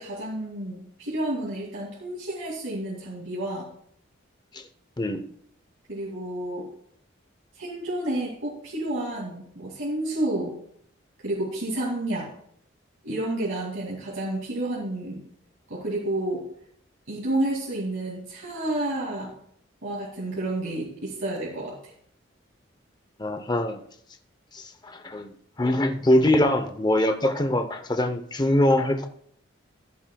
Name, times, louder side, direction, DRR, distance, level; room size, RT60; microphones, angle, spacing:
voice 1, 0.0-3.7 5.9-6.7 7.5-10.5 11.2-12.3 13.0-15.2 15.7-16.4 17.1-19.3 19.8-21.9, right 1 dB, 85° right, -4 dB, 2.4 m, -30 dB
voice 2, 23.2-23.8 24.5-29.1, left 1 dB, 20° left, 8 dB, 0.7 m, -23 dB
15.0 x 11.0 x 2.3 m, 0.66 s
head